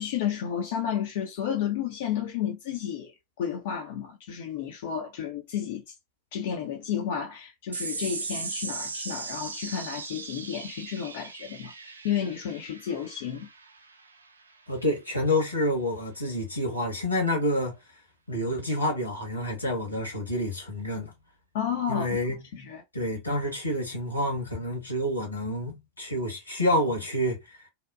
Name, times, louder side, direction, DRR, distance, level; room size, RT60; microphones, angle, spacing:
voice 1, 0.0-3.1 3.4-5.8 6.3-13.5 21.5-22.8, left 8 dB, 55° left, 0.5 m, -32 dB
sound 1, 7.7-14.5, right 4 dB, 75° right, 0.3 m, -38 dB
voice 2, 14.7-17.8 18.3-21.1 21.9-22.4 22.9-27.4, left 1 dB, 85° left, 1.3 m, -28 dB
2.7 x 2.1 x 2.4 m
figure-of-eight pair, 90°, 0 cm